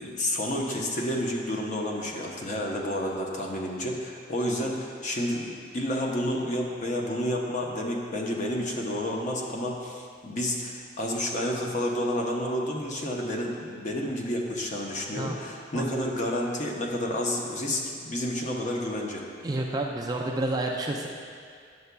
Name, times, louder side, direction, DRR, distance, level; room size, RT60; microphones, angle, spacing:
voice 1, 0.0-19.2, left 1 dB, 40° left, -1 dB, 0.7 m, -30 dB
voice 2, 19.4-21.1, right 2 dB, 20° right, 0 dB, 0.3 m, -29 dB
9.4 x 6.6 x 2.2 m, 2.2 s
head